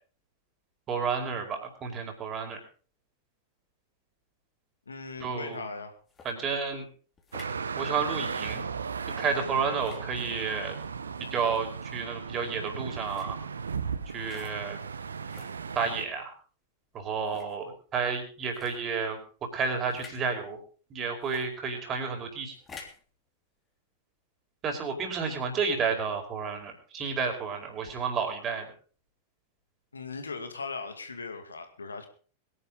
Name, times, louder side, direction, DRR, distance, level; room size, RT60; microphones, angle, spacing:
voice 1, 0.9-2.6 5.2-5.7 6.2-6.9 7.8-8.7 9.2-10.8 11.3-13.4 14.1-14.8 15.7-16.3 16.9-19.2 19.5-20.6 20.9-22.6 24.6-28.7, right 5 dB, 30° right, 3 dB, 5.0 m, -31 dB
voice 2, 4.9-5.9 29.9-32.1, left 4 dB, 75° left, 7 dB, 2.2 m, -38 dB
sound 1, 6.1-6.3 7.2-7.6 8.4-8.6 9.7-10.1 11.3-11.6 13.0-13.3 14.2-14.5 15.3-15.6 16.3-16.4 17.2-17.5 18.5-18.8 19.9-20.2 21.2-21.5 22.5-23.0, left 5 dB, 20° left, 3.4 m, -49 dB
sound 2, 7.3-16.1, right 6 dB, 70° right, 0.9 m, -36 dB
22.5 x 11.0 x 3.9 m, 0.40 s
figure-of-eight pair, 90°, 0 cm